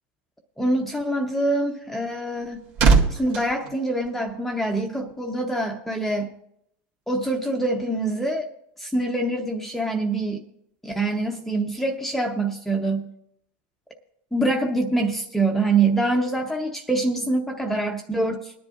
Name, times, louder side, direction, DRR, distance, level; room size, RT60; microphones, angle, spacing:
voice 1, 0.6-2.7 3.1-6.3 7.1-8.5 8.8-10.4 10.8-13.1 14.3-18.5, right 2 dB, 5° left, 1 dB, 0.8 m, -25 dB
sound 1, 2.0-4.7 5.0-5.3, right 4 dB, 60° right, 2.0 m, -23 dB
22.0 x 10.5 x 2.5 m, 0.75 s
supercardioid pair, 135°, 5 cm